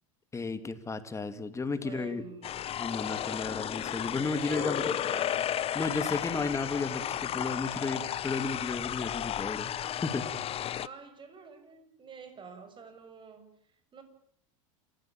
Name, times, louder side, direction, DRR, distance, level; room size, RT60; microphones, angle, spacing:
voice 1, 0.3-2.2 2.8-4.8 5.7-9.7 10.0-10.3, left 4 dB, 15° left, 10 dB, 2.7 m, -33 dB
voice 2, 1.8-2.7 4.4-6.6 10.7-14.0, right 4 dB, 30° right, 8 dB, 6.7 m, -48 dB
sound 1, 2.4-10.9, left 11 dB, 35° left, 0.9 m, -33 dB
29.0 x 15.5 x 9.0 m, 0.67 s
hypercardioid pair, 100°, 17 cm